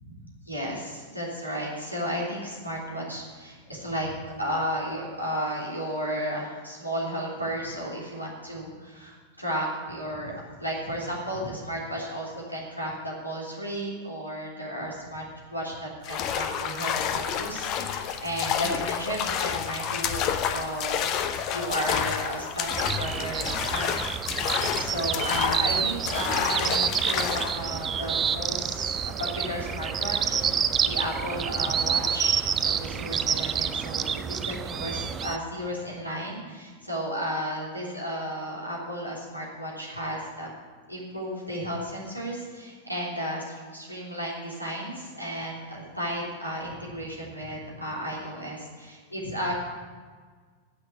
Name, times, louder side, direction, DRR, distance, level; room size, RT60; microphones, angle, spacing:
voice 1, 0.4-10.3 10.6-15.2 15.5-24.4 24.7-40.5 40.9-49.5, equal, 90° left, -4 dB, 3.3 m, -33 dB
sound 1, 16.0-27.6, left 8 dB, 40° left, 0.8 m, -29 dB
sound 2, 22.7-35.4, right 7 dB, 25° right, 0.5 m, -28 dB
10.0 x 8.1 x 8.5 m, 1.5 s
figure-of-eight pair, 90°, 0 cm